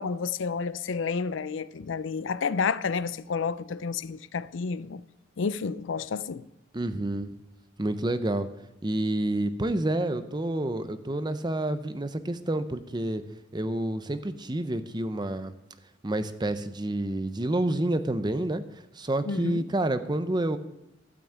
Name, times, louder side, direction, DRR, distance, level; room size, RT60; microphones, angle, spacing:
voice 1, 0.0-5.0 5.4-6.5 19.3-19.6, left 5 dB, 85° left, 0.5 m, -30 dB
voice 2, 6.7-7.3 7.8-8.5 8.8-13.2 13.5-15.5 16.0-18.6 18.9-20.6, right 1 dB, 25° right, 0.7 m, -28 dB
12.5 x 6.1 x 8.6 m
head